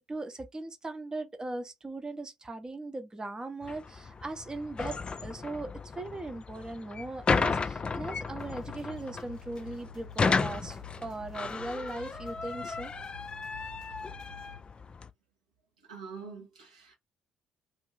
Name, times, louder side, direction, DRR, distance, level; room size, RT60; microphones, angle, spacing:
voice 1, 0.0-12.9, right 2 dB, 20° right, 0.7 m, -39 dB
sound 1, 3.6-15.1, left 4 dB, 30° left, 0.3 m, -34 dB
sound 2, 8.4-14.6, left 4 dB, 90° left, 0.6 m, -50 dB
voice 2, 15.8-17.0, right 5 dB, 80° right, 0.7 m, -45 dB
2.5 x 2.5 x 3.1 m
figure-of-eight pair, 45°, 4 cm